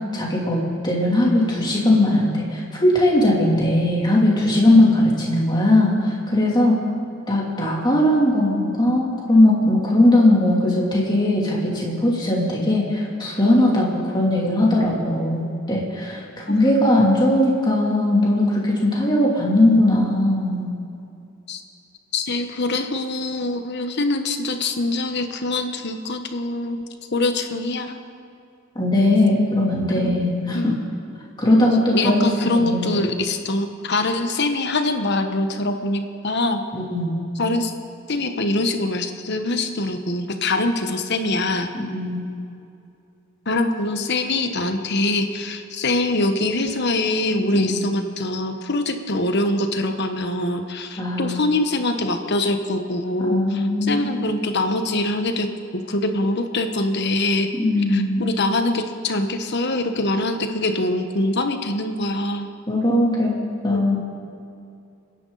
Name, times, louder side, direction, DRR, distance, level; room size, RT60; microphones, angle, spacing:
voice 1, 0.1-6.7 7.3-16.2 16.5-20.7 28.7-30.7 31.4-33.0 36.7-37.2 41.7-42.2 47.5-47.8 51.0-51.4 53.2-54.2 57.6-58.4 62.7-63.3 63.6-64.0, left 1 dB, 20° left, -4 dB, 3.0 m, -19 dB
voice 2, 22.1-26.8 27.1-28.0 30.0-30.1 30.5-30.8 31.9-36.6 37.4-37.7 38.1-41.7 43.5-55.5 55.7-57.5 57.9-62.5 63.7-63.8, left 2 dB, 55° left, 6 dB, 1.2 m, -23 dB
29.5 x 10.5 x 4.1 m, 2.6 s
head